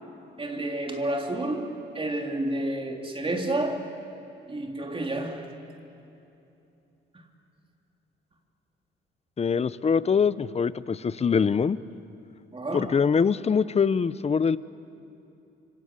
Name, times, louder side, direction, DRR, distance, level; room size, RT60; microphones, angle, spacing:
voice 1, 0.4-3.9 4.5-5.5 12.5-13.0, right 1 dB, 25° right, 3.3 m, -30 dB
voice 2, 9.4-11.8 12.7-14.6, left 6 dB, 30° left, 0.7 m, -23 dB
26.5 x 25.5 x 8.2 m
cardioid pair, 90°, 20 cm